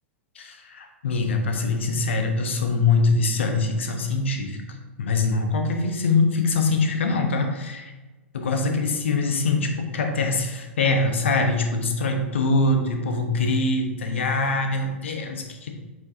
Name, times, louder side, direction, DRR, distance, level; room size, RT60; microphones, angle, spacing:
voice 1, 0.3-4.6 5.0-7.9 8.3-15.7, left 3 dB, 65° left, 4 dB, 1.0 m, -23 dB
8.2 x 4.7 x 2.7 m, 1.2 s
figure-of-eight pair, 95°, 7 cm